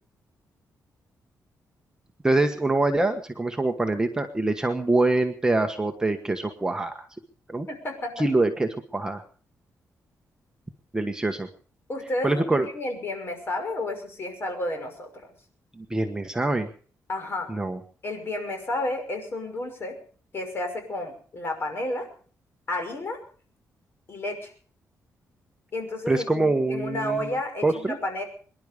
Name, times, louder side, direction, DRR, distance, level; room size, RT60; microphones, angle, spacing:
voice 1, 2.2-7.1 7.5-7.7 8.2-9.2 10.9-11.5 12.2-12.7 15.8-16.7 17.5-17.8 26.1-27.3 27.6-28.0, right 2 dB, 10° right, 5 dB, 1.3 m, -24 dB
voice 2, 7.7-8.1 11.9-15.3 17.1-17.5 18.0-19.9 20.3-22.1 22.7-23.2 24.1-24.5 25.7-28.2, left 1 dB, 40° left, 5 dB, 5.8 m, -31 dB
24.5 x 11.0 x 5.2 m, 0.43 s
cardioid pair, 140°, 6 cm